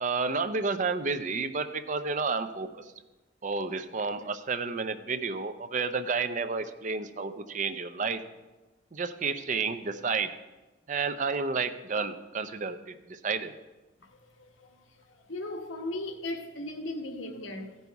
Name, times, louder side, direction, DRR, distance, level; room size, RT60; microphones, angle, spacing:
voice 1, 0.0-2.9 3.4-8.2 8.9-10.3 10.9-13.5, right 4 dB, 40° right, 0.5 m, -31 dB
voice 2, 14.0-17.8, left 1 dB, 90° left, 1.2 m, -38 dB
15.0 x 5.5 x 4.6 m
head